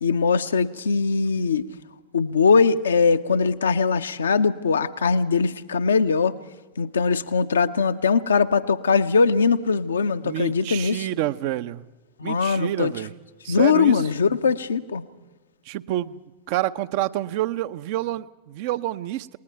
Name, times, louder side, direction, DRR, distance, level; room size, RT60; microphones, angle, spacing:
voice 1, 0.0-1.6 2.1-6.3 6.8-11.1 12.2-12.9 13.5-15.0, left 5 dB, 70° left, 10 dB, 0.8 m, -21 dB
voice 2, 10.2-11.8 12.2-13.1 13.4-14.0 15.7-16.2 16.5-19.4, right 14 dB, 50° right, 13 dB, 0.6 m, -28 dB
28.5 x 20.0 x 4.6 m, 1.3 s
figure-of-eight pair, 90°, 0 cm